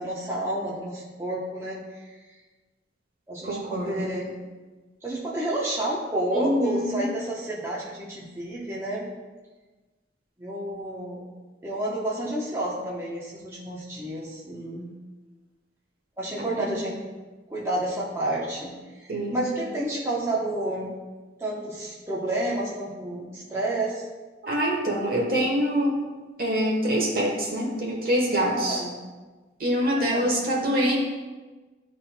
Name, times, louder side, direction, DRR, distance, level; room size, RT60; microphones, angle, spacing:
voice 1, 0.0-2.1 3.3-4.4 5.0-9.1 10.4-11.3 11.6-14.9 16.2-16.9 17.5-18.7 19.0-20.9 21.4-24.0 28.5-29.0 30.0-30.4, right 1 dB, 15° right, -6 dB, 0.9 m, -30 dB
voice 2, 3.4-4.2 6.3-7.1 16.5-16.8 19.1-19.4 24.4-26.0 26.4-28.8 29.6-31.0, equal, 50° right, -1 dB, 1.3 m, -25 dB
11.5 x 4.1 x 2.3 m, 1.3 s
head